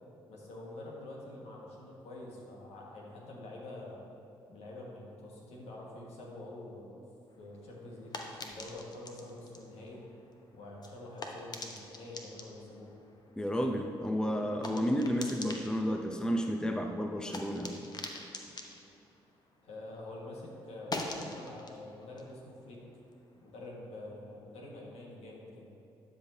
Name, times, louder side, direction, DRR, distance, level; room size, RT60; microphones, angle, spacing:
voice 1, 0.3-4.1 4.5-7.0 7.4-10.0 10.5-12.9 19.6-22.8 23.4-25.7, left 2 dB, 70° left, -3 dB, 1.6 m, -46 dB
sound 1, 7.3-20.1 20.4-23.6, left 2 dB, 35° left, 1.0 m, -46 dB
voice 2, 13.4-17.8, equal, 5° left, 4 dB, 0.6 m, -31 dB
12.0 x 5.3 x 2.7 m, 2.9 s
hypercardioid pair, 50°, 11 cm